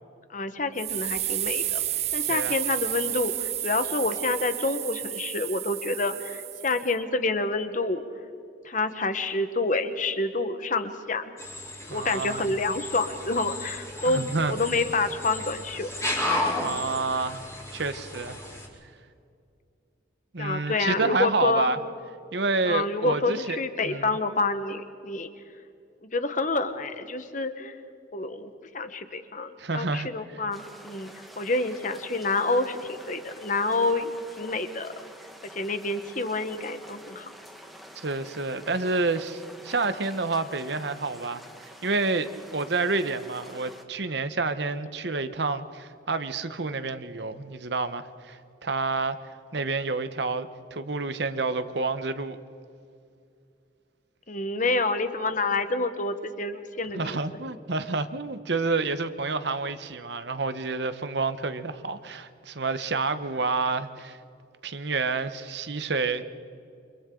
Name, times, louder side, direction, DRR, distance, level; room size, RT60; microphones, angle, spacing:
voice 1, 0.3-1.8 2.1-8.0 8.6-11.3 11.9-15.9 20.4-21.7 22.6-25.3 26.1-27.8 28.1-31.1 31.4-34.9 35.5-37.3 54.3-57.2, left 3 dB, 40° left, 9 dB, 1.2 m, -28 dB
sound 1, 0.8-6.9, right 13 dB, 35° right, 0.4 m, -31 dB
sound 2, 11.4-18.7, left 1 dB, 15° left, 3.4 m, -33 dB
voice 2, 11.9-12.5 14.0-14.5 16.6-17.4 17.7-18.4 18.8-18.9 20.3-21.8 22.3-23.6 23.8-24.2 29.6-30.4 38.0-49.2 49.5-52.4 56.9-64.2 64.6-66.2, right 3 dB, 60° right, 11 dB, 1.0 m, -29 dB
sound 3, 30.5-43.8, equal, ahead, 1.4 m, -48 dB
29.0 x 26.0 x 3.9 m, 2.5 s
head